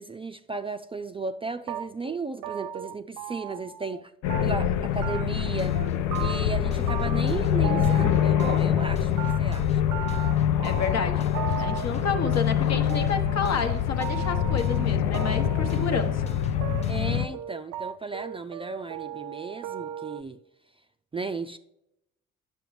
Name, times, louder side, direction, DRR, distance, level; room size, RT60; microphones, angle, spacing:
voice 1, 0.0-4.1 4.4-5.8 6.2-9.1 9.4-9.8 16.9-20.4 21.1-21.6, right 4 dB, 20° right, 0.3 m, -35 dB
sound 1, 1.7-4.0 4.3-4.8 5.0-5.5 5.8-6.6 6.9-8.9 9.2-20.2, right 10 dB, 85° right, 0.5 m, -37 dB
sound 2, 4.2-17.3, left 10 dB, 85° left, 0.5 m, -25 dB
sound 3, 5.4-17.4, left 5 dB, 20° left, 0.6 m, -43 dB
voice 2, 10.6-11.3 11.6-16.3, left 5 dB, 60° left, 1.0 m, -30 dB
9.1 x 6.9 x 3.2 m
cardioid pair, 90°, 30 cm